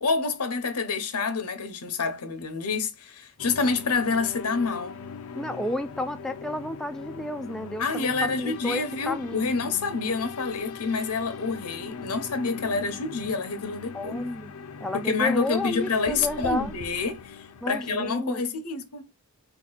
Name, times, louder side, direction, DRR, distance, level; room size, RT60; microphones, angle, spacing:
voice 1, 0.0-5.0 7.8-14.2 14.9-19.1, left 4 dB, 90° left, 1.0 m, -28 dB
sound 1, 3.4-18.1, left 5 dB, 70° left, 0.5 m, -40 dB
voice 2, 5.3-9.5 13.9-14.5 14.8-16.7 17.6-18.4, left 1 dB, ahead, 0.3 m, -31 dB
4.1 x 2.9 x 3.9 m
head